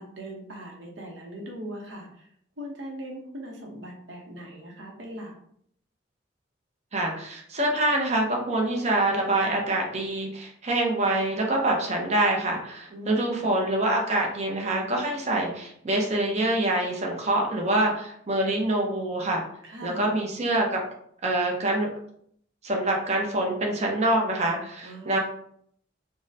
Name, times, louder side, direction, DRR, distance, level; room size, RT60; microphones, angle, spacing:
voice 1, 0.0-2.3 2.6-5.3 12.9-13.5 19.6-20.1 24.8-25.2, equal, 70° right, 0 dB, 0.8 m, -39 dB
voice 2, 6.9-19.4 19.8-20.8 21.2-21.9 22.6-25.2, right 1 dB, 35° right, 0 dB, 0.6 m, -25 dB
3.6 x 2.1 x 2.7 m, 0.66 s
head